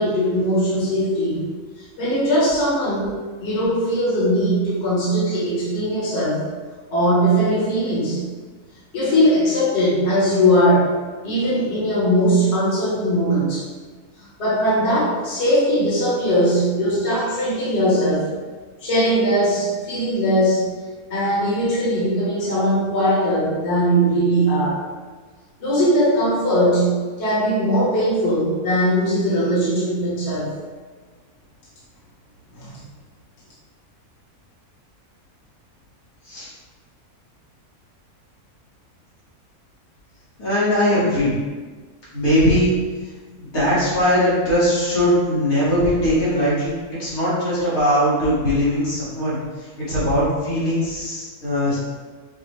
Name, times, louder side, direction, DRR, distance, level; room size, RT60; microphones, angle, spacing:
voice 1, 0.0-1.4 2.0-6.4 6.9-8.2 8.9-10.9 11.2-13.6 14.4-18.3 18.8-20.6 21.1-24.8 25.6-30.5 32.6-32.7, equal, 45° left, -9 dB, 1.5 m, -20 dB
voice 2, 40.4-41.4 42.1-42.7 43.3-51.8, equal, 75° left, -10 dB, 2.1 m, -20 dB
5.8 x 2.4 x 3.2 m, 1.4 s
omnidirectional pair, 1.6 m